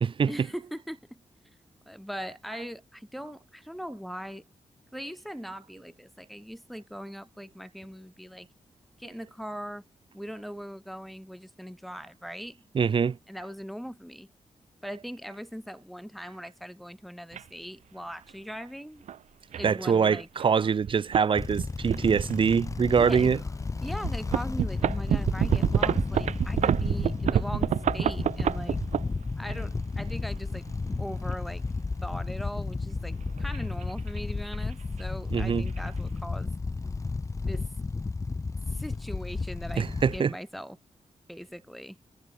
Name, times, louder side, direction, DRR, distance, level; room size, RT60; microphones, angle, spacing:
voice 1, 0.3-1.2 1.9-4.4 4.9-8.5 9.0-9.8 10.1-12.6 13.3-14.3 14.8-19.0 19.5-20.3 23.0-23.3 23.8-28.8 29.4-30.6 31.0-31.6 32.0-36.5 37.5-37.7 38.7-39.8 40.1-40.8 41.3-42.0, equal, ahead, 5.6 m, -40 dB
voice 2, 12.7-13.2 19.6-23.4 35.3-35.7 39.8-40.3, right 6 dB, 45° right, 0.6 m, -24 dB
sound 1, 17.3-17.4 18.3-18.5 19.1-19.2 19.5-19.7 20.4-20.5 20.8-21.2 21.5-22.8 23.3-23.4 24.0-29.6 30.4-31.3 33.0-34.2 34.5-34.7 35.0-35.1 35.4-35.8, right 9 dB, 85° right, 0.8 m, -28 dB
sound 2, 21.4-40.2, left 3 dB, 25° left, 0.8 m, -33 dB
cardioid pair, 90°, 12 cm